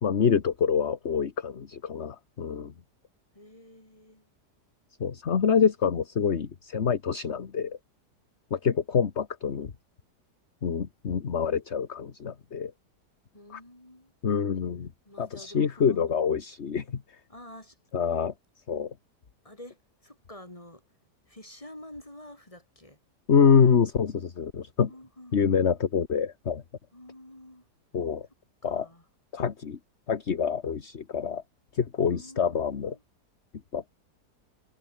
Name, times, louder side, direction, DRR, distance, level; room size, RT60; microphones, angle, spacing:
voice 1, 0.0-2.7 5.0-7.8 8.5-9.7 10.6-12.7 13.5-13.6 14.2-14.9 15.2-17.0 17.9-18.3 18.7-18.9 23.3-24.9 25.3-26.6 27.9-28.3 28.6-28.9 29.3-29.8 30.1-31.4 31.7-33.0 33.7-34.0, left 6 dB, 45° left, 1.5 m, -26 dB
voice 2, 3.3-4.3 13.3-14.1 15.0-16.0 17.3-17.8 19.4-19.8 20.0-20.8 21.3-23.0 24.9-25.6 26.9-27.7 28.6-29.0 32.0-33.0, left 1 dB, 20° left, 5.8 m, -48 dB
omnidirectional pair, 1.8 m